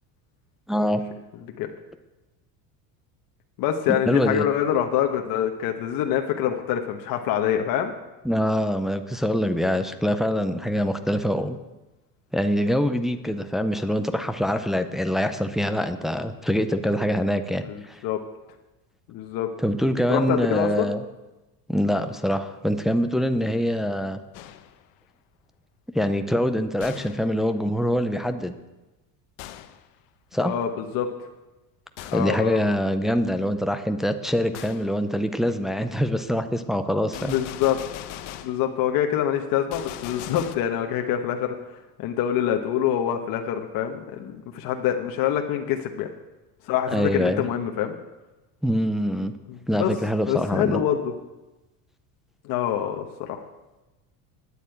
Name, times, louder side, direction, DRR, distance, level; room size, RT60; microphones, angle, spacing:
voice 1, 0.7-1.0 4.1-4.4 8.2-11.6 12.3-18.0 19.6-21.0 21.7-24.2 25.9-28.5 30.3-30.5 32.1-37.4 46.9-47.5 48.6-49.3 49.7-50.8, equal, ahead, 7 dB, 0.5 m, -24 dB
voice 2, 3.6-7.9 17.7-17.8 18.0-18.2 19.1-19.5 20.1-20.9 30.4-31.1 32.1-32.7 37.2-38.1 38.4-41.5 42.0-46.1 46.6-47.9 49.5-49.9 50.3-51.1 52.4-53.4, left 10 dB, 55° left, 4 dB, 1.1 m, -25 dB
Gunshot gunfire, 24.3-24.9 26.8-27.3 29.4-29.9 32.0-32.4 34.5-34.9 37.1-38.7 39.7-40.6, left 12 dB, 75° left, 1.0 m, -39 dB
9.8 x 8.3 x 8.2 m, 1.1 s
cardioid pair, 145°, 41 cm